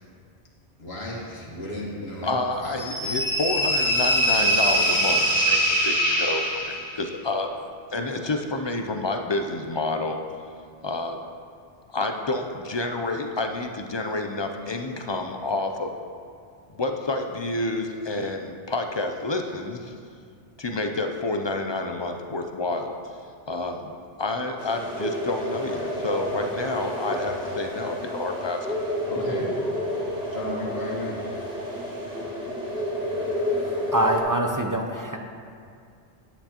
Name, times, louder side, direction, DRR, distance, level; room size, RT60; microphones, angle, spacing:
voice 1, 0.8-2.7 29.1-29.5 30.3-31.2, left 1 dB, 80° left, -3 dB, 1.7 m, -34 dB
voice 2, 2.2-7.5 7.9-10.2 10.8-11.2 11.9-15.9 16.8-19.9 20.6-22.9 23.5-28.9, left 2 dB, 45° left, 4 dB, 0.3 m, -29 dB
sound 1, 2.8-7.0, equal, 20° left, 1.4 m, -22 dB
sound 2, 24.6-34.2, equal, 5° right, 1.6 m, -30 dB
voice 3, 33.5-35.2, right 1 dB, 30° right, 2 dB, 0.4 m, -25 dB
9.9 x 9.0 x 2.9 m, 2.3 s
omnidirectional pair, 1.0 m